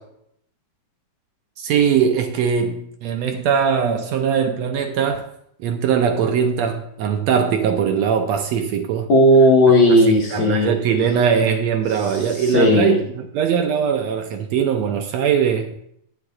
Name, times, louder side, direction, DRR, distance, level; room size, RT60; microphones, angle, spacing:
voice 1, 1.6-5.3 5.6-9.1 9.9-10.0 10.3-15.7, right 7 dB, 80° right, 1.6 m, -21 dB
voice 2, 9.1-10.7 12.5-13.0, left 1 dB, 50° left, 1.6 m, -14 dB
17.0 x 7.9 x 2.4 m
omnidirectional pair, 3.7 m